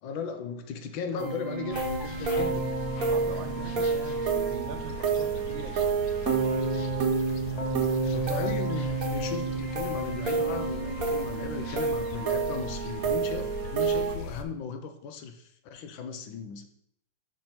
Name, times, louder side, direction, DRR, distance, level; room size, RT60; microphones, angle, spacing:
voice 1, 0.0-2.7 8.1-16.7, left 6 dB, 85° left, 7 dB, 1.5 m, -37 dB
sound 1, 1.2-14.2, right 5 dB, 55° right, 1.4 m, -29 dB
sound 2, 1.7-14.4, left 4 dB, 65° left, 1.0 m, -40 dB
Keyboard (musical), 2.4-4.7 6.3-10.5, equal, 30° left, 0.9 m, -35 dB
voice 2, 3.1-6.1 8.0-8.1, right 7 dB, 85° right, 8 dB, 1.5 m, -42 dB
5.4 x 4.4 x 5.7 m, 0.72 s
omnidirectional pair, 2.0 m